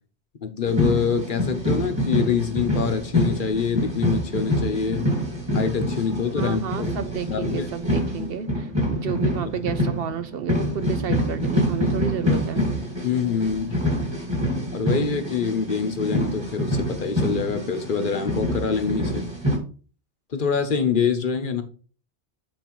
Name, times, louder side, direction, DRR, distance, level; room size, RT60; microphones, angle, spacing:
voice 1, 0.4-5.1 5.5-6.9 7.3-7.7 13.0-13.8 14.7-19.3 20.3-21.6, left 6 dB, 50° left, 7 dB, 1.0 m, -25 dB
sound 1, 0.7-19.6, equal, 25° right, 1.8 m, -26 dB
voice 2, 6.4-12.6, right 7 dB, 65° right, 11 dB, 0.8 m, -31 dB
9.1 x 4.5 x 3.0 m, 0.39 s
omnidirectional pair, 1.1 m